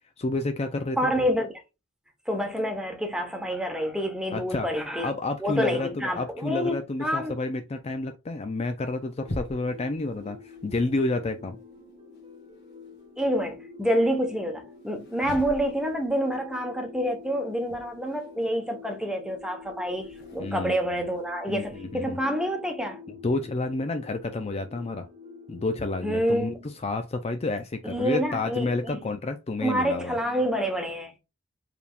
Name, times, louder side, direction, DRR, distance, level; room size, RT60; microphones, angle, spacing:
voice 1, 0.2-1.0 4.3-4.7 5.0-11.6 20.4-20.8 21.5-22.2 23.2-25.1 25.5-26.5 26.8-30.2, left 2 dB, 30° left, 0.5 m, -30 dB
voice 2, 1.0-1.5 2.3-5.1 5.4-7.4 13.2-23.0 26.0-26.7 27.8-29.1 29.6-31.2, equal, 5° right, 1.1 m, -28 dB
sound 1, 8.8-13.1 14.7-22.2, left 1 dB, 55° left, 1.5 m, -45 dB
sound 2, 9.2-26.2, left 4 dB, 30° right, 1.2 m, -47 dB
4.7 x 3.4 x 2.4 m
head